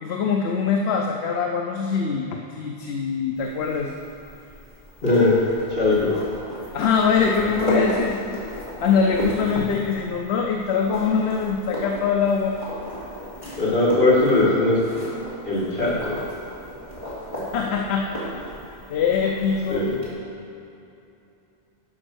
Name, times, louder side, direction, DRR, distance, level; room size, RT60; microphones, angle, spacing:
voice 1, 0.0-3.9 6.7-8.4 8.8-12.6 17.4-18.1 18.9-19.8, left 6 dB, 75° left, 2 dB, 0.9 m, -23 dB
sound 1, 3.4-20.1, equal, 30° left, 2.7 m, -34 dB
voice 2, 5.0-5.3 5.7-6.1 13.6-14.8 15.5-16.1 19.7-19.9, left 2 dB, 55° left, -8 dB, 2.6 m, -19 dB
11.0 x 5.4 x 6.1 m, 2.7 s
omnidirectional pair, 1.1 m